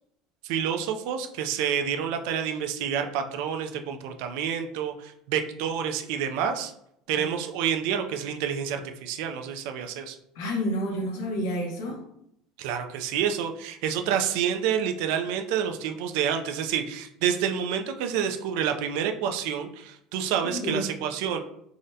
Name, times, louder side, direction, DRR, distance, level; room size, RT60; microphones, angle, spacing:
voice 1, 0.4-6.7 7.1-10.2 12.6-21.4, right 8 dB, 65° right, 5 dB, 0.3 m, -28 dB
voice 2, 10.3-12.0 20.5-20.9, equal, 85° left, 0 dB, 0.7 m, -29 dB
3.6 x 2.1 x 2.6 m, 0.73 s
cardioid pair, 175°, 0 cm